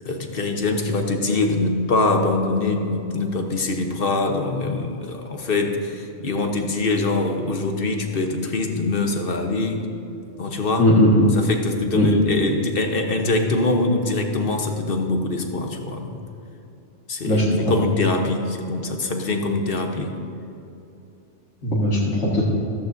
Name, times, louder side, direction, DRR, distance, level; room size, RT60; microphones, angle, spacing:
voice 1, 0.0-9.9 10.4-10.9 11.3-16.2 17.1-20.2, left 2 dB, 50° left, 4 dB, 1.1 m, -23 dB
voice 2, 10.8-11.2 11.9-12.1 17.2-17.7 21.6-22.4, left 1 dB, 75° left, -6 dB, 1.9 m, -18 dB
14.5 x 14.0 x 2.6 m, 2.8 s
omnidirectional pair, 1.2 m